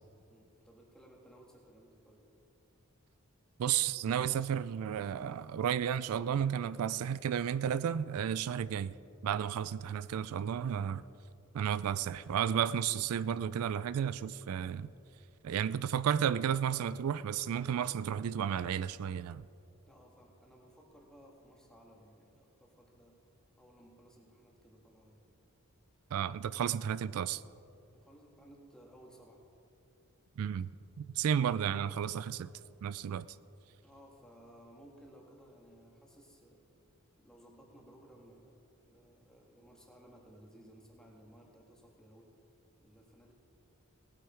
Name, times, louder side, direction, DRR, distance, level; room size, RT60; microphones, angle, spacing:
voice 1, 0.3-2.2 19.9-23.2 23.6-25.2 27.9-29.4 33.8-36.6 37.2-42.3 42.8-43.3, right 1 dB, 5° left, 1.8 m, -58 dB
voice 2, 3.6-9.0 9.2-11.0 11.5-14.9 15.4-19.4 26.1-27.4 30.4-30.7 31.0-32.5 32.8-33.3, right 8 dB, 80° right, 0.3 m, -32 dB
19.0 x 9.0 x 4.5 m
head